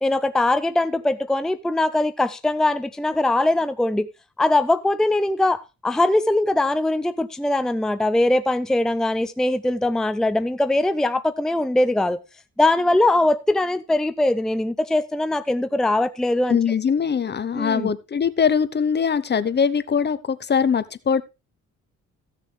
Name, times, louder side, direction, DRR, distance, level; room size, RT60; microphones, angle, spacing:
voice 1, 0.0-4.1 4.4-12.2 12.6-16.6 17.5-17.9, left 2 dB, ahead, 0.6 m, -21 dB
voice 2, 16.5-21.2, left 6 dB, 35° left, 0.8 m, -22 dB
15.5 x 6.8 x 3.3 m
cardioid pair, 90°, 30 cm